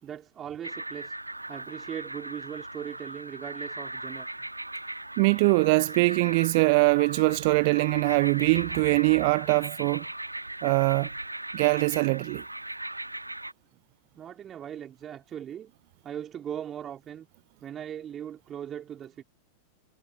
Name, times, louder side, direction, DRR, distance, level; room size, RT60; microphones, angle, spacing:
voice 1, 0.0-1.2 1.5-4.3 14.1-15.7 16.0-17.3 17.6-19.2, right 9 dB, 25° right, 3.3 m, -39 dB
sound 1, 0.6-13.5, right 1 dB, 85° right, 1.6 m, -38 dB
voice 2, 5.2-10.0 10.6-11.1 11.5-12.4, right 27 dB, 50° right, 0.5 m, -22 dB
figure-of-eight pair, 90°, 0 cm